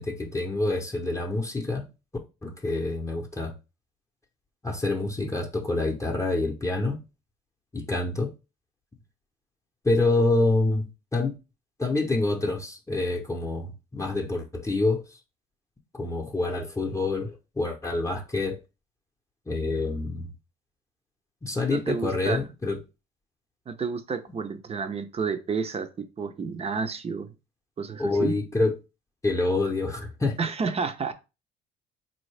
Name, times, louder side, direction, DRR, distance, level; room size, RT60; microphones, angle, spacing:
voice 1, 0.0-1.9 2.4-3.5 4.6-7.0 7.7-8.3 9.8-11.3 11.8-15.0 15.9-18.6 19.5-20.3 21.4-22.8 28.0-28.8 29.2-30.4, left 2 dB, 15° left, 0.7 m, -27 dB
voice 2, 21.7-22.4 23.7-27.3 27.8-28.3 30.4-31.1, right 5 dB, 35° right, 0.6 m, -30 dB
3.9 x 2.7 x 3.2 m
supercardioid pair, 80°, 19 cm